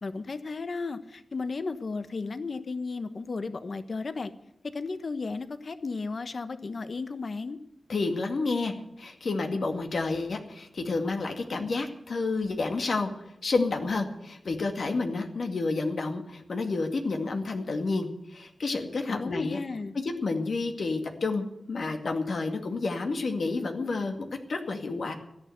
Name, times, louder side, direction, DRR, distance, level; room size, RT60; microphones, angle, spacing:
voice 1, 0.0-4.3 4.7-7.6 19.0-19.9, left 4 dB, 55° left, 10 dB, 1.2 m, -34 dB
voice 2, 7.9-13.1 13.4-19.6 19.9-25.1, left 3 dB, 70° left, 4 dB, 2.2 m, -30 dB
14.5 x 10.5 x 8.0 m, 0.84 s
wide cardioid pair, 125°, 0 cm